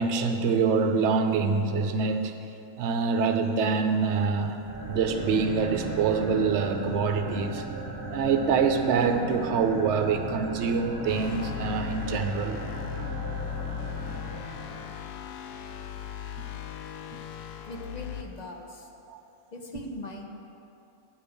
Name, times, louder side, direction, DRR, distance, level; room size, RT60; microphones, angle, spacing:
voice 1, 0.0-2.3 2.8-7.6 8.1-12.6 19.1-19.2, right 5 dB, 60° right, 6 dB, 0.9 m, -25 dB
sound 1, 4.6-15.1, right 1 dB, 15° left, 1.5 m, -36 dB
sound 2, 11.1-18.2, left 11 dB, 85° left, 1.0 m, -38 dB
voice 2, 17.6-18.9 19.5-20.2, left 2 dB, 40° left, 2 dB, 0.7 m, -40 dB
8.9 x 5.3 x 7.0 m, 2.7 s
omnidirectional pair, 1.4 m